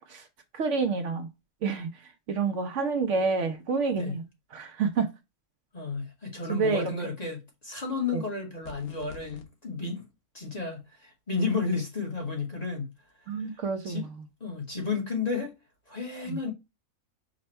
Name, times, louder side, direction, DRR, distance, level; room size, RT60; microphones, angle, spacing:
voice 1, 0.5-1.3 1.6-4.2 4.5-5.1 6.5-6.9 8.1-8.2 13.3-14.1 16.3-16.4, right 4 dB, 65° right, 0.8 m, -28 dB
voice 2, 5.7-10.1 10.3-12.9 13.8-14.1 14.4-15.5 15.9-16.5, left 4 dB, 30° left, 1.0 m, -32 dB
sound 1, 8.6-9.5, left 3 dB, 55° left, 0.8 m, -45 dB
5.1 x 2.2 x 4.2 m
omnidirectional pair, 1.5 m